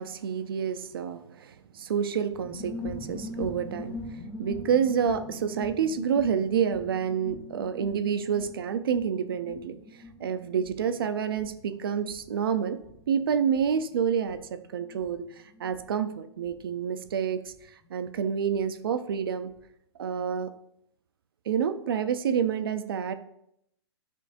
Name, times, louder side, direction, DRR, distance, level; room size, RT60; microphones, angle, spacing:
voice 1, 0.0-9.8 10.2-12.8 13.1-14.4 14.7-15.2 15.6-17.5 17.9-19.5 20.0-20.5 21.5-23.1, right 7 dB, 55° right, 11 dB, 0.6 m, -28 dB
sound 1, 2.3-18.6 18.9-19.0 19.2-19.6, left 2 dB, 10° left, 0.7 m, -43 dB
11.0 x 5.5 x 2.6 m, 0.76 s
hypercardioid pair, 170°, 15 cm